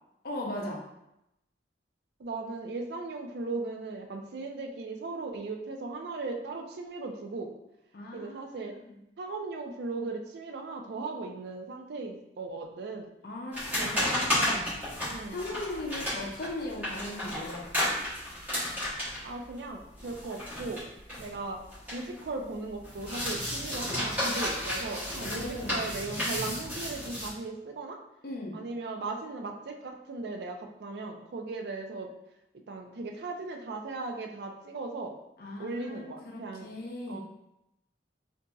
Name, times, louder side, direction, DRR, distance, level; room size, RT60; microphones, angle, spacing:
voice 1, 0.2-0.8 7.9-9.0 13.2-14.7 15.3-17.9 25.3-25.8 28.2-28.6 35.4-37.2, left 1 dB, 60° left, -1 dB, 0.5 m, -38 dB
voice 2, 2.2-7.5 8.1-8.8 9.2-13.1 13.8-14.8 15.1-15.5 19.2-20.9 21.1-21.6 21.9-28.0 28.5-32.1 32.7-35.2 35.6-36.8 37.1-37.2, right 3 dB, 65° right, 3 dB, 0.4 m, -37 dB
sound 1, 13.5-22.3 22.5-27.3, left 1 dB, 10° right, 1.4 m, -33 dB
3.9 x 2.5 x 2.3 m, 0.86 s
head